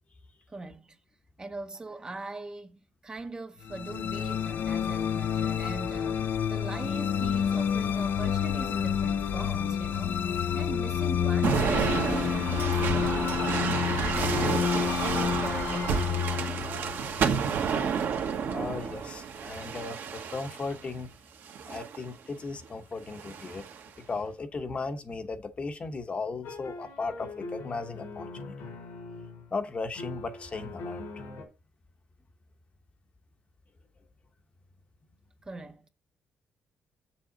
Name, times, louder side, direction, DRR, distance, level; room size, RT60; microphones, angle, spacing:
voice 1, 0.5-1.0 1.4-13.8 14.1-16.8 35.4-35.9, right 3 dB, 20° right, 0.7 m, -41 dB
sound 1, 3.7-18.0, left 8 dB, 55° left, 0.5 m, -29 dB
sound 2, 11.4-20.8 21.5-22.0 23.1-23.8, right 6 dB, 60° right, 1.3 m, -30 dB
voice 2, 18.5-21.1 21.7-23.7 24.0-28.6 29.5-31.0, left 4 dB, 30° left, 0.9 m, -36 dB
sound 3, 26.4-29.5 29.9-31.5, left 3 dB, 90° left, 3.8 m, -41 dB
7.2 x 6.8 x 3.9 m
cardioid pair, 145°, 4 cm